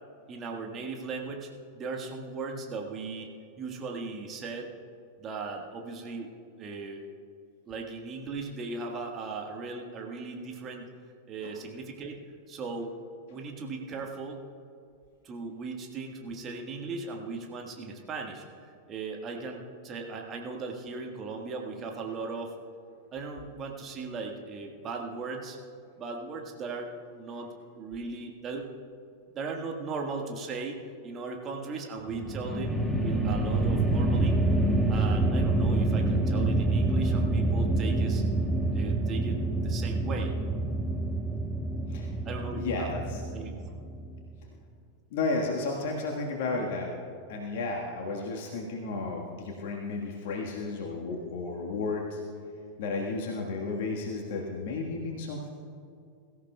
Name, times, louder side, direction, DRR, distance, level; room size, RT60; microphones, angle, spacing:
voice 1, 0.3-3.3 3.6-4.7 5.2-6.3 6.6-7.0 7.7-10.9 11.3-12.2 12.5-12.9 13.3-14.4 15.2-22.5 23.1-25.6 26.0-28.7 29.3-32.7 33.0-34.4 34.9-38.2 38.7-40.3 42.2-42.9 43.3-43.7, right 4 dB, 30° right, 1 dB, 1.5 m, -37 dB
sound 1, 32.0-44.3, right 2 dB, ahead, 1.2 m, -27 dB
voice 2, 42.5-43.2 45.1-46.9 47.3-52.2 52.8-55.5, left 3 dB, 50° left, -1 dB, 1.5 m, -33 dB
22.5 x 14.0 x 2.3 m, 2.3 s
figure-of-eight pair, 90°, 0 cm